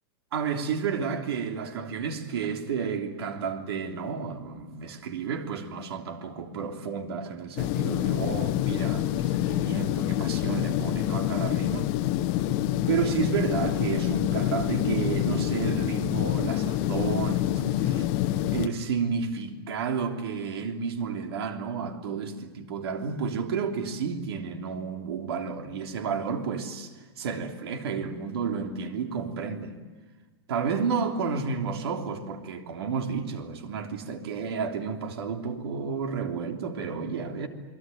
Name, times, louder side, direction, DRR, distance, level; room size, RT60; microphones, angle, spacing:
voice 1, 0.3-11.9 12.9-18.1 18.5-29.8 30.5-37.5, right 6 dB, 70° right, 3.3 m, -31 dB
sound 1, 7.6-18.7, left 13 dB, 35° left, 1.2 m, -27 dB
28.5 x 21.5 x 9.3 m
supercardioid pair, 160°, 13 cm